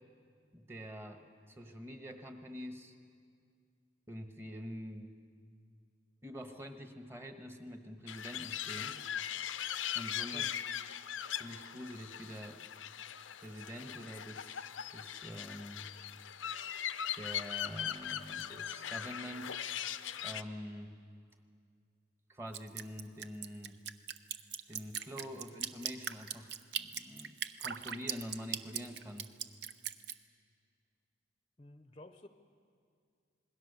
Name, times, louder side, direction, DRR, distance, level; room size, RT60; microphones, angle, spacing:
voice 1, 0.5-2.9 4.1-5.1 6.2-9.0 9.9-10.5 11.4-12.6 13.4-15.9 17.1-19.6 20.2-21.0 22.3-23.8 24.7-29.3, equal, 15° right, 6 dB, 1.3 m, -46 dB
sound 1, 8.1-20.4, left 10 dB, 90° left, 0.7 m, -40 dB
Drip, 22.5-30.1, right 9 dB, 60° right, 0.7 m, -39 dB
voice 2, 31.6-32.3, left 1 dB, 25° left, 8 dB, 0.7 m, -52 dB
27.0 x 21.0 x 6.8 m, 2.2 s
head